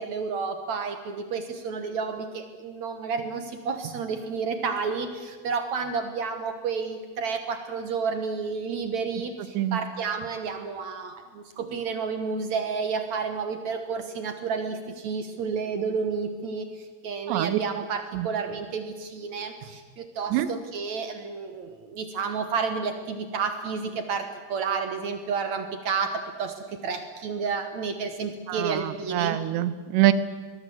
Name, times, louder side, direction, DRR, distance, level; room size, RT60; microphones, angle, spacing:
voice 1, 0.0-29.4, right 5 dB, 65° right, 7 dB, 1.8 m, -31 dB
voice 2, 17.3-17.6 18.1-18.3 20.3-20.5 28.5-30.1, right 14 dB, 90° right, 13 dB, 3.2 m, -24 dB
23.0 x 20.5 x 7.9 m, 1.4 s
omnidirectional pair, 5.0 m